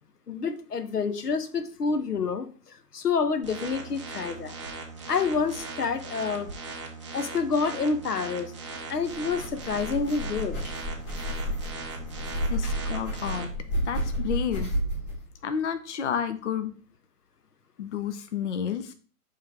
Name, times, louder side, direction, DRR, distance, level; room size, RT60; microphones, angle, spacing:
voice 1, 0.3-4.6 5.1-6.5 7.1-8.5 8.9-10.6 12.6-12.8, left 5 dB, 80° left, 9 dB, 0.9 m, -28 dB
sound 1, 3.4-13.4, right 3 dB, 20° right, 0.5 m, -39 dB
sound 2, 9.1-15.2, equal, 35° left, 3.6 m, -31 dB
voice 2, 12.5-13.5 13.8-14.7 15.4-16.7 17.8-18.9, left 8 dB, 50° left, 9 dB, 0.6 m, -30 dB
8.7 x 3.3 x 3.4 m, 0.39 s
figure-of-eight pair, 135°, 46 cm